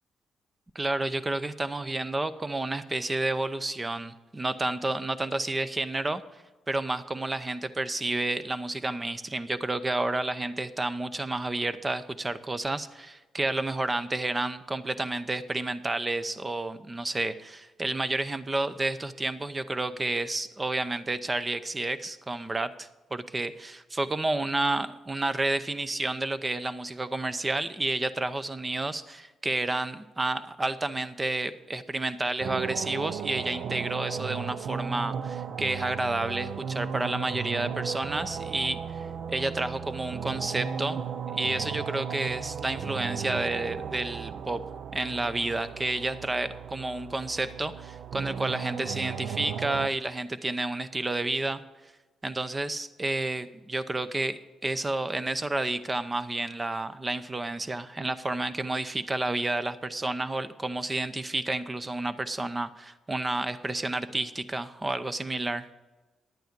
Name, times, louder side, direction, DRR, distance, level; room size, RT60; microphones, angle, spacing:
voice 1, 0.7-6.2 6.7-41.0 41.3-44.6 44.9-51.6 52.2-65.7, right 2 dB, 20° right, 13 dB, 0.7 m, -30 dB
sound 1, 32.4-49.9, right 7 dB, 65° right, 0.5 m, -36 dB
10.5 x 9.1 x 5.3 m, 1.2 s
cardioid pair, 90°, 0 cm